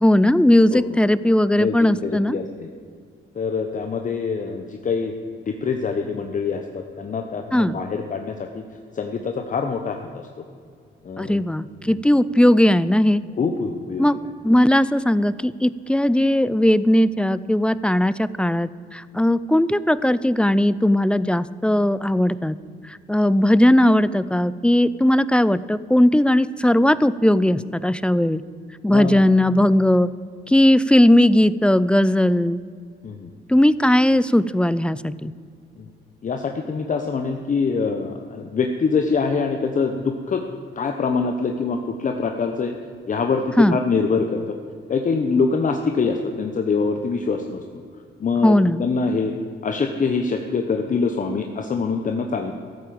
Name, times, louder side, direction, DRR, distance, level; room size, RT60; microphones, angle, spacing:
voice 1, 0.0-2.4 7.5-7.8 11.2-13.2 14.0-14.2 14.4-22.6 22.9-28.4 28.8-30.1 30.5-32.6 33.5-35.3 43.6-43.8 48.4-48.8, left 1 dB, 5° left, 17 dB, 0.4 m, -18 dB
voice 2, 1.6-2.7 3.3-5.1 5.5-8.6 8.9-10.4 11.0-11.4 11.9-12.0 13.4-14.1 28.9-29.2 33.0-33.3 35.8-35.9 36.2-40.4 40.8-42.8 43.1-44.5 44.9-47.6 48.2-49.4 49.6-52.5, left 5 dB, 40° left, 4 dB, 1.0 m, -24 dB
13.5 x 8.5 x 7.7 m, 2.2 s
cardioid pair, 90°, 20 cm